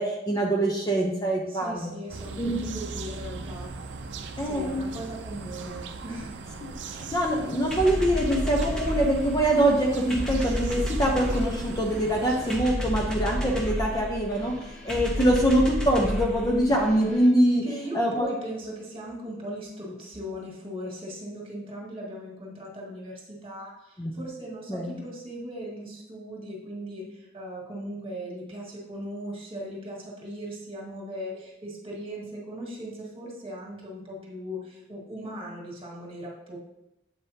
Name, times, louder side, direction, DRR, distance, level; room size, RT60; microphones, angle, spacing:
voice 1, 0.0-1.9 2.4-2.7 4.4-4.8 6.6-17.7 17.9-18.3 24.0-24.1 24.7-24.9, right 1 dB, 20° left, -1 dB, 0.7 m, -24 dB
voice 2, 1.5-3.8 4.4-6.4 17.6-36.6, equal, 30° right, -3 dB, 1.8 m, -38 dB
sound 1, 2.1-12.6, right 3 dB, 75° right, 0.5 m, -39 dB
sound 2, 7.7-17.3, equal, 5° left, 1.2 m, -32 dB
8.0 x 5.4 x 2.8 m, 0.90 s
head